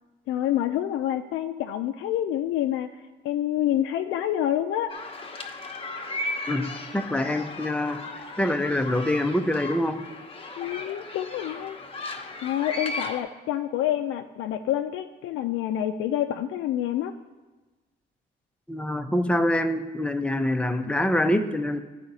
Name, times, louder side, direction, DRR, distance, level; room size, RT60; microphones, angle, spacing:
voice 1, 0.3-2.9 3.2-4.9 10.6-11.8 12.4-17.1, left 11 dB, 85° left, 5 dB, 0.4 m, -27 dB
sound 1, 4.9-13.2, left 2 dB, 30° left, 0.9 m, -36 dB
voice 2, 6.5-8.0 8.4-10.1 18.7-21.8, left 1 dB, 5° left, 7 dB, 0.6 m, -25 dB
11.0 x 4.9 x 4.0 m, 1.2 s
cardioid pair, 90°, 20 cm